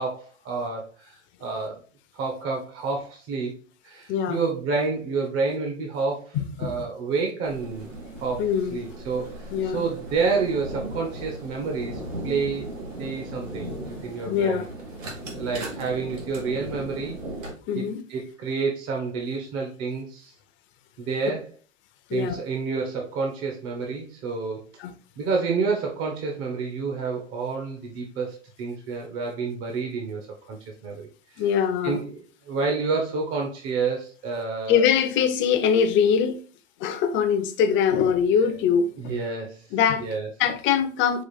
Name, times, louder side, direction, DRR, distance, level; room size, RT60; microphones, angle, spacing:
voice 1, 0.0-1.8 2.1-7.9 8.2-14.6 15.3-17.2 17.7-20.3 21.0-21.5 22.1-24.6 25.2-30.6 30.8-31.1 31.3-31.5 31.8-34.9 39.0-39.7 40.0-40.3, right 4 dB, 35° right, 0.9 m, -29 dB
voice 2, 4.1-4.4 6.3-6.7 8.4-8.8 9.5-9.8 14.3-14.7 17.7-18.0 22.1-22.4 24.8-24.9 31.4-32.0 34.7-36.4 36.8-39.1 39.7-40.0 40.4-41.2, left 7 dB, 30° left, 0.6 m, -22 dB
sound 1, 7.4-17.5, right 1 dB, 85° right, 1.7 m, -37 dB
5.0 x 2.4 x 4.0 m
hypercardioid pair, 120°, 38 cm